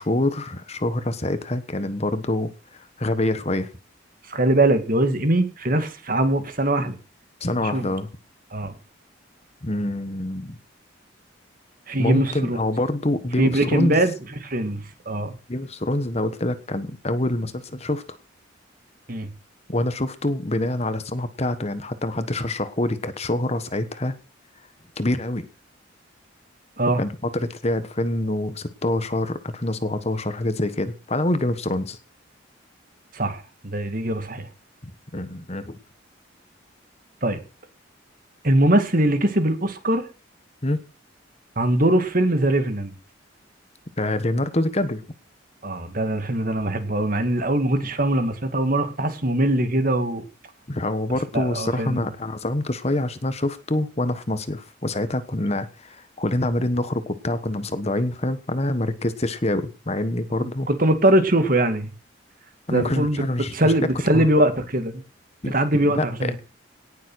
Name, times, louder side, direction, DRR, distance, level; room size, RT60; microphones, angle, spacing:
voice 1, 0.0-3.7 7.4-8.1 9.6-10.6 12.0-14.0 15.5-18.0 19.7-24.1 25.0-25.5 27.0-32.0 34.8-35.8 40.6-40.8 44.0-45.0 50.7-60.7 62.7-63.7 64.1-64.3 65.4-65.5 65.8-66.4, left 1 dB, 30° left, 12 dB, 1.3 m, -26 dB
voice 2, 4.3-6.9 7.6-7.9 8.5-8.7 11.9-12.6 13.4-14.1 14.4-15.3 19.1-19.3 26.8-27.0 33.1-34.5 37.2-37.4 38.4-40.0 41.6-42.9 45.6-50.2 51.3-52.0 60.7-61.9 62.7-65.0 65.5-66.4, right 1 dB, 45° right, 9 dB, 2.2 m, -22 dB
18.0 x 7.4 x 6.3 m, 0.34 s
head